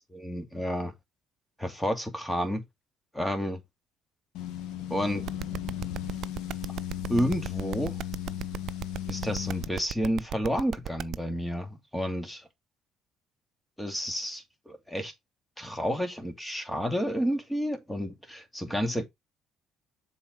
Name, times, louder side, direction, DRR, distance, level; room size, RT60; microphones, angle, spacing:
voice 1, 0.1-0.9 1.6-2.6 3.1-3.6 4.9-5.3 7.1-8.0 9.1-12.4 13.8-15.1 15.6-19.0, equal, 5° left, 2.4 m, -30 dB
sound 1, 4.3-9.7, left 11 dB, 75° left, 1.4 m, -36 dB
sound 2, 5.3-11.1, right 10 dB, 65° right, 0.5 m, -35 dB
7.2 x 4.4 x 4.5 m
supercardioid pair, 70°, 0 cm